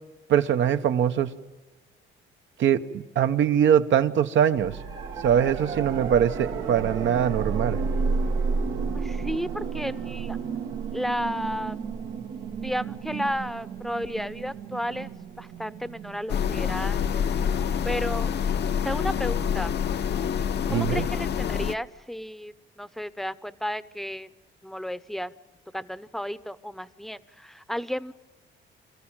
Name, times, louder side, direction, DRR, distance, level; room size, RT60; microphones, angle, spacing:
voice 1, 0.3-1.3 2.6-4.8 5.2-7.8 20.7-21.0, right 9 dB, 70° right, 9 dB, 1.1 m, -22 dB
sound 1, 4.6-17.5 19.8-19.9, right 5 dB, 90° right, 1.7 m, -32 dB
voice 2, 8.9-10.4 10.9-11.8 12.6-15.1 15.4-17.3 17.8-18.3 18.8-19.7 20.7-24.3 24.6-25.3 25.7-28.1, equal, ahead, 15 dB, 0.8 m, -33 dB
sound 2, 16.3-21.8, left 8 dB, 60° left, 0.8 m, -27 dB
27.0 x 14.5 x 8.8 m, 1.3 s
cardioid pair, 90°, 20 cm